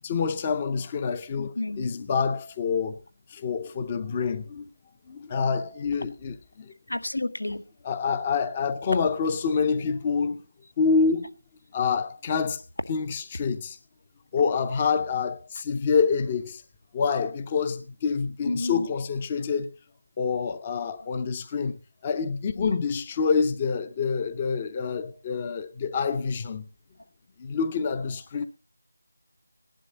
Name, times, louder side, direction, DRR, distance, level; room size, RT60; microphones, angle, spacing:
voice 1, 0.0-3.0 3.3-4.7 5.1-6.7 7.8-10.4 10.8-11.3 11.7-12.6 12.9-13.8 14.3-16.6 16.9-19.7 20.2-21.8 22.0-26.6 27.4-28.5, left 5 dB, 15° left, 0.6 m, -27 dB
voice 2, 1.6-1.9 6.9-7.6 18.4-18.9, left 2 dB, 85° left, 1.6 m, -30 dB
17.5 x 11.5 x 3.9 m
figure-of-eight pair, 175°, 0 cm